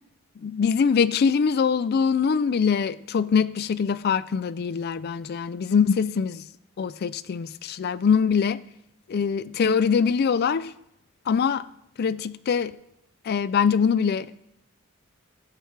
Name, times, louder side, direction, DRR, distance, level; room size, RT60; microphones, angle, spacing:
voice 1, 0.4-6.4 6.8-8.6 9.1-10.7 11.3-11.6 12.0-12.7 13.3-14.4, left 6 dB, 50° left, 0.3 m, -23 dB
15.5 x 7.2 x 3.2 m
head